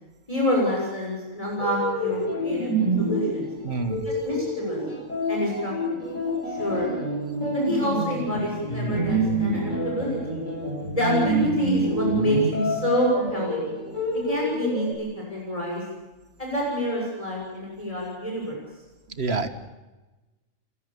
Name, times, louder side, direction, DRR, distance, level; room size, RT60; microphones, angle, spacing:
voice 1, 0.3-3.4 4.2-4.8 5.3-6.0 6.6-6.9 7.6-10.4 10.9-13.7 14.3-15.8 16.4-18.5, equal, 25° left, -3 dB, 6.8 m, -27 dB
sound 1, 1.6-14.9, right 1 dB, 90° left, 8.2 m, -27 dB
voice 2, 3.6-4.1 19.1-19.5, right 3 dB, 55° right, 9 dB, 1.8 m, -27 dB
29.5 x 17.5 x 6.9 m, 1.1 s
omnidirectional pair, 1.3 m